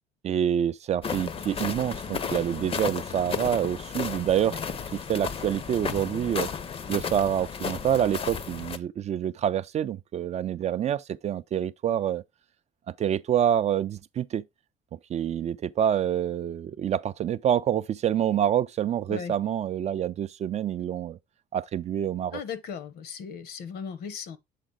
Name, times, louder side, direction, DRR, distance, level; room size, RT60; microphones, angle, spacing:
voice 1, 0.2-4.6 4.9-6.5 6.9-12.2 12.9-14.4 15.1-21.2 21.5-22.4, right 10 dB, 40° right, 0.4 m, -27 dB
sound 1, 1.0-8.8, left 6 dB, 35° left, 0.6 m, -33 dB
voice 2, 22.3-24.4, left 7 dB, 70° left, 0.9 m, -37 dB
7.3 x 3.9 x 3.7 m
cardioid pair, 110°, 17 cm